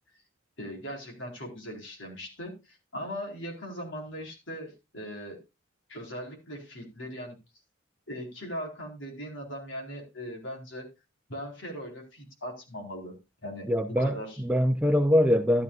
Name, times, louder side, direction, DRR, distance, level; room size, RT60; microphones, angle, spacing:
voice 1, 0.6-5.4 5.9-7.4 8.1-10.9 11.3-13.2 13.4-14.4, equal, 65° left, 4.3 m, -39 dB
voice 2, 13.7-15.6, equal, 5° right, 0.7 m, -23 dB
13.5 x 12.0 x 2.5 m
head